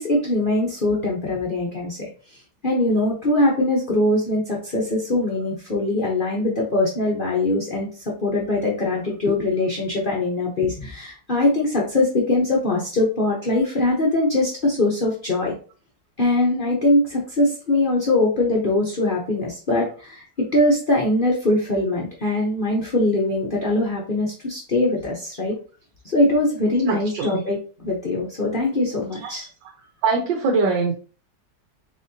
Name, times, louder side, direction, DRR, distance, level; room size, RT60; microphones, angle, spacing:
voice 1, 0.0-2.1 2.6-7.9 8.2-15.5 16.2-25.6 26.0-27.6 27.8-29.5, left 2 dB, 45° left, -3 dB, 0.6 m, -22 dB
voice 2, 26.9-27.4 30.0-30.9, right 4 dB, 80° right, 2 dB, 1.5 m, -22 dB
4.1 x 3.7 x 2.7 m, 0.38 s
omnidirectional pair, 2.0 m